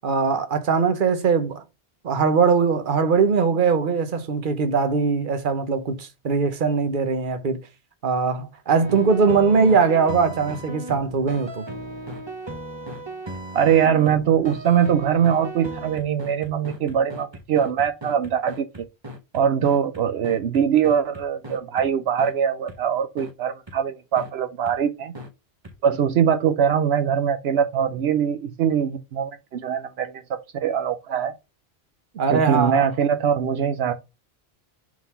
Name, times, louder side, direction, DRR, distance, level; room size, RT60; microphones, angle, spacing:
voice 1, 0.0-1.6 2.0-7.6 8.0-11.6 32.2-32.9, right 5 dB, 55° right, 1.1 m, -21 dB
sound 1, 8.8-21.9 22.2-22.3 22.7-22.8 23.2-23.3 23.7-23.8 24.2-24.3 24.7-24.8 25.1-25.3 25.6-25.7, right 1 dB, 25° right, 0.9 m, -36 dB
voice 2, 13.5-18.7 19.3-25.1 25.8-30.2 30.5-31.3 32.3-33.9, right 8 dB, 80° right, 0.9 m, -22 dB
4.7 x 3.9 x 5.4 m
omnidirectional pair, 1.0 m